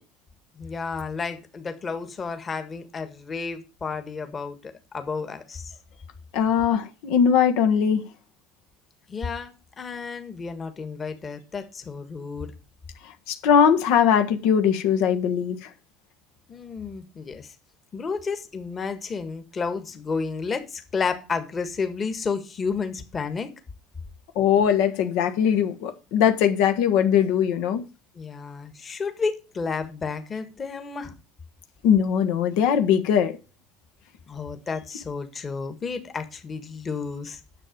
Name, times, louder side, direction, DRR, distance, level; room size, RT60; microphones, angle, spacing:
voice 1, 0.6-5.8 9.1-12.5 16.5-17.5 17.9-23.5 28.1-31.1 34.3-37.4, left 5 dB, 25° left, 1.5 m, -31 dB
voice 2, 6.3-8.0 13.3-15.6 24.3-27.8 31.8-33.4, left 8 dB, 75° left, 1.5 m, -20 dB
9.9 x 7.3 x 5.2 m
cardioid pair, 145°, 0 cm